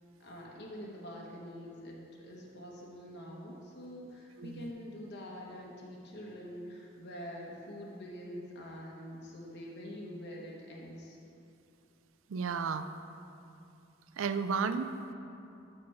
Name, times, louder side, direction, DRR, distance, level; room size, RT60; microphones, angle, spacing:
voice 1, 0.2-11.2, equal, 55° left, -2 dB, 0.9 m, -45 dB
voice 2, 4.4-4.7 12.3-12.9 14.2-14.9, right 5 dB, 90° right, 11 dB, 0.4 m, -33 dB
6.0 x 5.5 x 6.7 m, 2.7 s
head